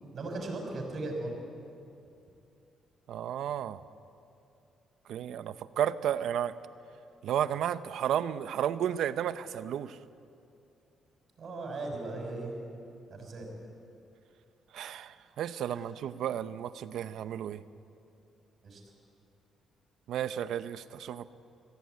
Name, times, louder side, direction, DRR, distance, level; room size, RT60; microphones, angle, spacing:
voice 1, 0.1-1.4 11.4-12.6 13.1-13.5 15.7-15.8 18.6-18.8, right 2 dB, 50° right, 2 dB, 6.3 m, -37 dB
voice 2, 3.1-3.8 5.1-6.5 7.2-10.0 14.7-17.6 20.1-21.3, right 10 dB, 75° right, 14 dB, 0.8 m, -32 dB
23.0 x 16.5 x 9.4 m, 2.6 s
cardioid pair, 90°, 0 cm